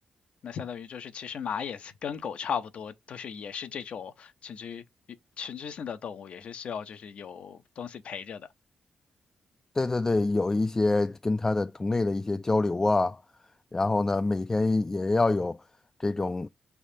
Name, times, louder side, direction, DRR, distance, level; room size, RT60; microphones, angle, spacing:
voice 1, 0.4-4.8 5.4-8.5, left 7 dB, 65° left, 0.6 m, -37 dB
voice 2, 9.8-13.2 13.7-15.6 16.0-16.5, left 2 dB, 25° left, 0.3 m, -26 dB
4.8 x 3.4 x 2.7 m
supercardioid pair, 55°, 2 cm